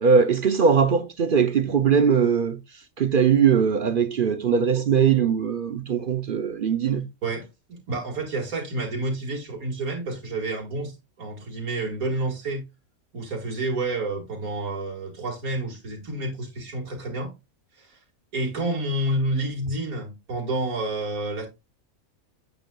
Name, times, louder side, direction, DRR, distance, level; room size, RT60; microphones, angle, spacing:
voice 1, 0.0-2.6 3.0-7.1, right 6 dB, 50° right, 0.7 m, -20 dB
voice 2, 7.2-12.6 13.1-17.3 17.7-18.0 18.3-21.5, right 2 dB, 80° right, 2.4 m, -29 dB
9.0 x 8.2 x 2.3 m
omnidirectional pair, 1.5 m